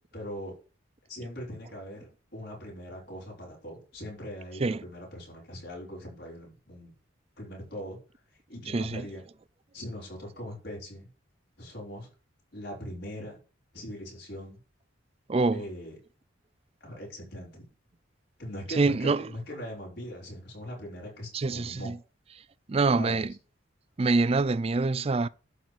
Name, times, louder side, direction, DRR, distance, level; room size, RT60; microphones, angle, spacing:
voice 1, 0.1-0.5 1.1-6.9 7.4-8.0 8.5-9.2 9.7-11.1 11.6-12.1 12.5-13.4 13.7-14.6 15.5-16.0 16.8-17.7 18.4-21.9 22.9-23.3, equal, 55° left, 5.2 m, -41 dB
voice 2, 8.7-9.1 15.3-15.6 18.7-19.2 21.3-22.0 22.7-23.3 24.0-25.3, right 3 dB, 30° right, 0.4 m, -25 dB
11.5 x 4.0 x 7.7 m
head